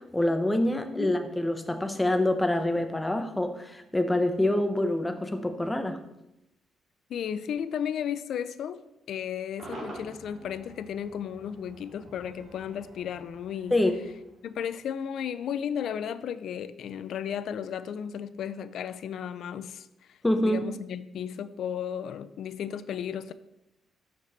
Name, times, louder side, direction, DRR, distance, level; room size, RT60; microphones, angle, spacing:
voice 1, 0.0-6.0 13.7-14.0 20.2-20.6, left 1 dB, 10° left, 0.8 m, -26 dB
voice 2, 7.1-8.8 9.1-13.8 14.4-20.2 20.4-23.3, left 8 dB, 70° left, 0.3 m, -34 dB
Cheering / Crowd / Fireworks, 9.6-14.9, right 1 dB, 55° right, 2.4 m, -47 dB
5.9 x 5.9 x 4.0 m
cardioid pair, 90°, 0 cm